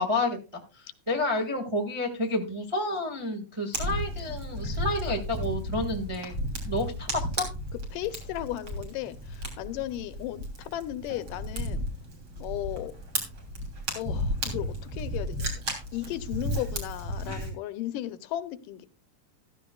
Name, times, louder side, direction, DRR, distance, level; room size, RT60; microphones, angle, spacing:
voice 1, 0.0-6.3 6.6-7.5, left 2 dB, 20° right, 1 dB, 0.8 m, -30 dB
Fire, 3.7-17.5, equal, 35° right, 3.8 m, -34 dB
voice 2, 7.9-11.8 12.4-12.9 13.9-15.6 15.9-18.9, left 13 dB, 80° left, 12 dB, 2.3 m, -35 dB
15.0 x 13.5 x 2.3 m, 0.30 s
omnidirectional pair, 3.9 m